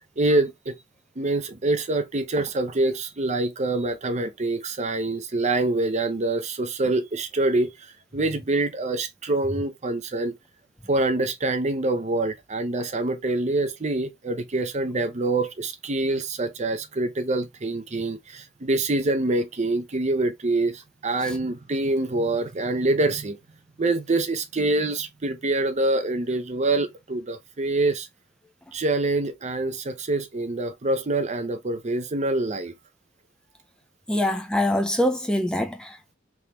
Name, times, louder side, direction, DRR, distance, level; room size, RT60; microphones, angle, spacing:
voice 1, 0.2-0.7 1.2-7.7 8.1-10.4 10.9-23.4 23.8-28.1 28.7-32.7, right 2 dB, 35° right, 0.7 m, -25 dB
voice 2, 34.1-36.1, left 1 dB, 5° left, 0.5 m, -24 dB
3.6 x 3.4 x 2.9 m
head